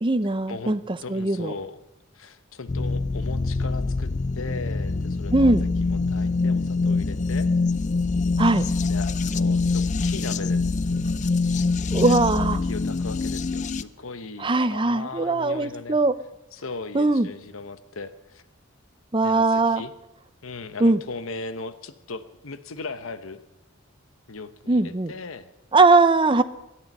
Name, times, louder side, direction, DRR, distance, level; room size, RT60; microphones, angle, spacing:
voice 1, 0.0-1.5 5.3-5.6 8.4-8.6 11.9-12.6 14.4-16.1 16.9-17.3 19.1-19.8 20.8-21.0 24.7-25.1 25.7-26.4, right 3 dB, 25° right, 12 dB, 0.7 m, -20 dB
voice 2, 1.0-1.8 2.1-5.5 5.8-7.5 8.8-10.6 12.0-16.0 16.5-18.4 19.2-19.9 20.4-23.4 24.3-25.5, left 3 dB, 85° left, 13 dB, 1.0 m, -38 dB
sound 1, 2.7-13.8, left 3 dB, 35° left, 0.4 m, -24 dB
18.5 x 13.0 x 5.4 m, 0.94 s
head